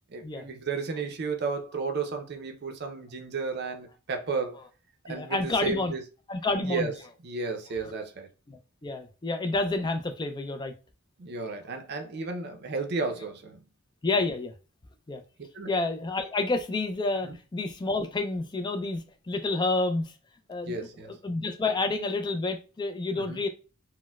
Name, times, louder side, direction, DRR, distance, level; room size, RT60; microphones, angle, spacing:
voice 1, 0.1-4.6 5.1-6.0 6.6-6.9 7.2-8.3 11.2-13.7 15.5-15.7 17.2-17.4 20.7-21.2 23.2-23.4, right 4 dB, 50° right, 0.5 m, -33 dB
voice 2, 5.1-5.9 6.3-6.9 8.5-10.7 14.0-14.5 15.1-15.2 15.7-20.1 20.5-20.7 21.0-23.5, left 3 dB, 20° left, 0.3 m, -29 dB
4.2 x 2.1 x 2.2 m
head